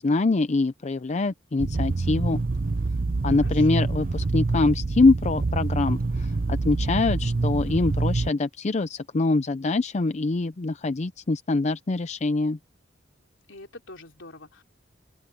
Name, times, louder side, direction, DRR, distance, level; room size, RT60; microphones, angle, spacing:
voice 1, 0.0-2.4 3.2-12.6, left 3 dB, 35° left, 0.5 m, -24 dB
sound 1, 1.6-8.3, right 3 dB, 50° right, 0.6 m, -26 dB
voice 2, 3.4-4.0 13.5-14.6, left 2 dB, 70° left, 3.6 m, -45 dB
open air
head